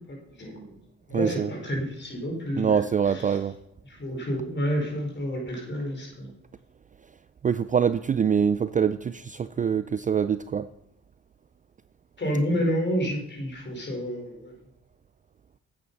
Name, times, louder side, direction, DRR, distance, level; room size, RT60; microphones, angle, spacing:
voice 1, 0.1-0.7 1.1-3.4 3.8-6.3 12.2-14.5, equal, 35° left, 1 dB, 4.7 m, -30 dB
voice 2, 1.1-1.5 2.6-3.5 7.4-10.7, right 7 dB, 25° right, 13 dB, 0.4 m, -24 dB
8.9 x 8.6 x 5.5 m, 0.82 s
cardioid pair, 90°, 30 cm